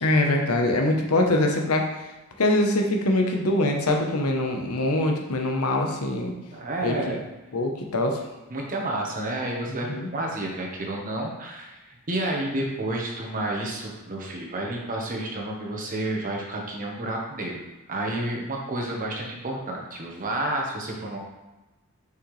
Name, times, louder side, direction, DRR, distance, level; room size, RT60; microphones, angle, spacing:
voice 1, 0.0-1.9 2.4-6.4 6.8-7.2 7.5-8.2 9.7-10.1, left 1 dB, 80° left, 2 dB, 1.0 m, -23 dB
voice 2, 6.5-7.2 8.5-17.6 17.9-21.2, right 1 dB, 40° right, -1 dB, 1.3 m, -30 dB
6.4 x 5.6 x 3.3 m, 1.1 s
head